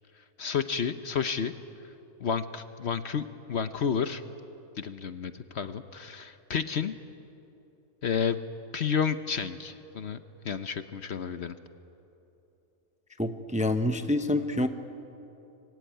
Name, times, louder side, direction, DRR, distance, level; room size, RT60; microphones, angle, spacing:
voice 1, 0.4-1.5 2.2-4.2 4.8-7.0 8.0-8.4 8.7-11.6, left 7 dB, 55° left, 10 dB, 1.0 m, -31 dB
voice 2, 13.2-14.7, left 1 dB, 5° right, 8 dB, 0.8 m, -27 dB
25.5 x 23.0 x 9.2 m, 3.0 s
omnidirectional pair, 1.5 m